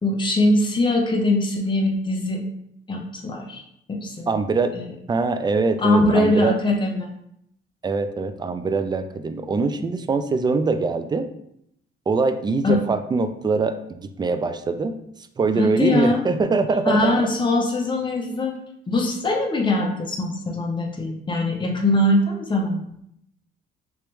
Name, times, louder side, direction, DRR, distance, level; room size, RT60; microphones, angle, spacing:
voice 1, 0.0-2.4 2.9-3.6 3.9-4.4 4.7-4.8 5.8-7.1 12.6-12.8 15.6-16.2 16.9-18.5 18.9-22.9, left 2 dB, 25° left, 0 dB, 0.7 m, -22 dB
voice 2, 4.3-4.7 5.1-6.5 7.8-11.3 12.1-14.9 15.4-17.1, right 4 dB, 20° right, 9 dB, 0.3 m, -23 dB
3.0 x 3.0 x 3.3 m, 0.74 s
cardioid pair, 90°, 20 cm